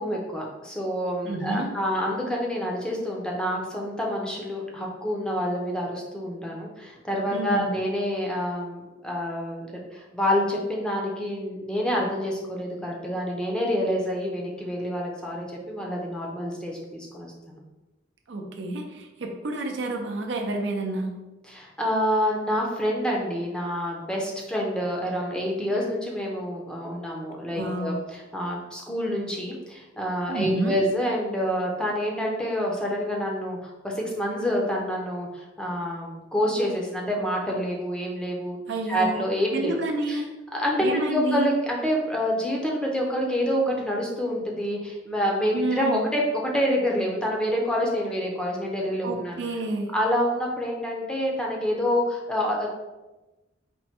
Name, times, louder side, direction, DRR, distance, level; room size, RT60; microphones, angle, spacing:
voice 1, 0.0-9.7 9.9-17.6 21.5-38.6 38.9-39.7 40.1-40.2 40.5-49.4 49.9-52.7, equal, 5° left, -2 dB, 0.6 m, -27 dB
voice 2, 1.2-1.7 7.3-7.7 18.3-21.2 27.5-28.0 30.3-30.8 38.7-39.2 39.5-40.3 40.8-41.5 45.5-46.1 49.0-49.9, right 2 dB, 65° right, 2 dB, 0.6 m, -29 dB
4.3 x 2.1 x 4.3 m, 1.1 s
head